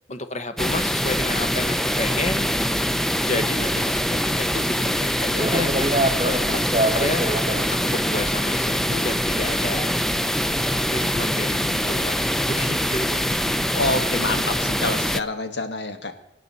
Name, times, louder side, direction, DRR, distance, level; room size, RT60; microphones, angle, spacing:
voice 1, 0.1-2.5 3.0-7.2 7.7-9.9 10.6-13.2, left 2 dB, 40° left, 9 dB, 0.9 m, -31 dB
sound 1, 0.6-15.2, equal, ahead, 0.4 m, -24 dB
sound 2, 2.2-15.1, right 1 dB, 30° right, 1.3 m, -32 dB
voice 2, 13.7-16.1, left 2 dB, 70° left, 8 dB, 1.4 m, -27 dB
23.5 x 9.2 x 4.1 m, 1.0 s
head